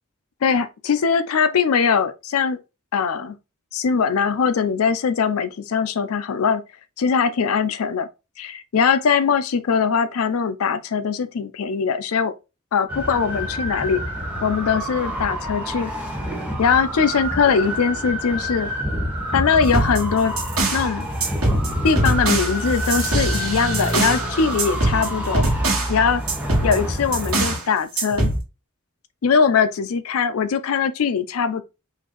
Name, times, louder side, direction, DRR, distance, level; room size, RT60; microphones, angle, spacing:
voice 1, 0.4-2.6 2.9-3.4 3.7-6.6 7.0-8.1 8.4-12.3 12.7-14.0 14.4-15.9 16.6-18.7 19.3-20.3 20.7-21.1 21.8-25.5 25.9-26.2 26.6-28.3 29.2-31.6, left 6 dB, 80° left, 0.4 m, -21 dB
sound 1, 12.9-27.6, equal, 5° right, 0.8 m, -28 dB
sound 2, 19.7-20.9 21.2-24.3 24.6-26.0 26.3-27.6 28.0-28.4, right 2 dB, 75° right, 1.3 m, -23 dB
3.9 x 2.5 x 2.9 m
head